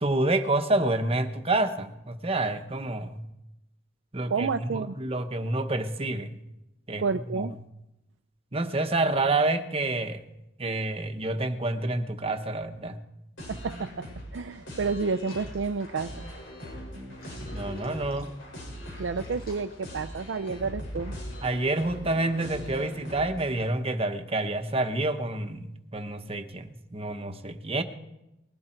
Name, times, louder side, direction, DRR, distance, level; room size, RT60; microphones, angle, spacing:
voice 1, 0.0-3.2 4.1-6.4 6.9-7.6 8.5-10.2 10.6-13.0 17.5-18.3 21.4-27.8, right 2 dB, 30° right, 7 dB, 1.1 m, -28 dB
voice 2, 4.3-5.0 7.0-7.5 13.5-14.1 14.3-16.2 19.0-21.2, right 4 dB, 70° right, 8 dB, 0.5 m, -30 dB
sound 1, 13.4-23.7, equal, 85° left, 6.1 m, -40 dB
sound 2, 15.1-20.5, left 2 dB, 50° left, 6.4 m, -57 dB
20.5 x 15.5 x 4.5 m, 0.92 s
head